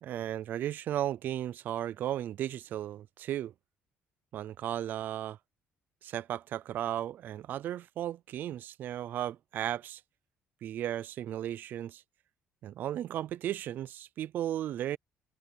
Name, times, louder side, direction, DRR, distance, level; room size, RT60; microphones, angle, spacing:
voice 1, 0.0-3.5 4.3-5.4 6.0-10.0 10.6-12.0 12.6-15.0, right 11 dB, 50° right, 0.4 m, -35 dB
cardioid pair, 165°, 4 cm